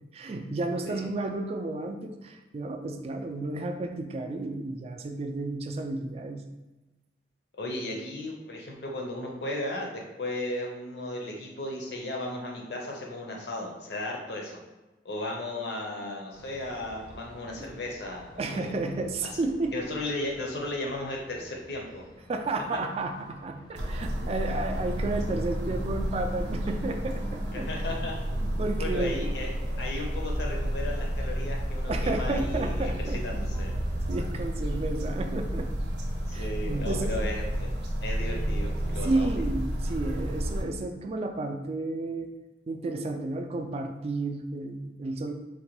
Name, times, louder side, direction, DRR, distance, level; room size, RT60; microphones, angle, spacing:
voice 1, 0.1-6.4 17.6-17.7 18.4-19.7 22.3-27.7 28.4-29.4 29.6-29.7 31.0-31.1 31.9-33.2 34.1-35.7 36.3-37.2 39.0-42.3 42.7-45.3, right 2 dB, 35° right, 5 dB, 0.3 m, -32 dB
voice 2, 7.6-9.9 10.2-14.6 15.0-18.7 19.3-19.4 19.7-22.0 27.5-28.1 28.8-29.5 29.8-33.7 36.3-37.7 38.0-39.3, left 1 dB, 70° left, 0 dB, 0.7 m, -35 dB
sound 1, 16.3-34.9, left 1 dB, 25° left, 0.5 m, -52 dB
sound 2, 23.7-40.6, equal, 75° right, 0.6 m, -31 dB
3.9 x 2.2 x 2.9 m, 1.1 s
head